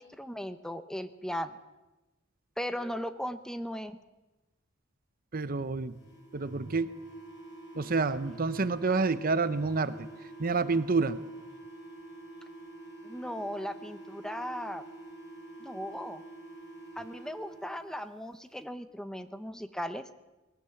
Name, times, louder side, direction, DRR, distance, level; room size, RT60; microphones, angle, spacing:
voice 1, 0.0-1.5 2.6-4.0 13.0-14.8 15.6-16.2 17.0-20.1, equal, 5° left, 10 dB, 0.8 m, -37 dB
voice 2, 5.3-5.9 6.3-7.0 7.8-10.1 10.4-11.2, right 4 dB, 45° right, 14 dB, 0.8 m, -28 dB
sound 1, 5.9-18.0, right 1 dB, 65° left, 5.3 m, -47 dB
20.0 x 18.0 x 7.8 m, 1.1 s
head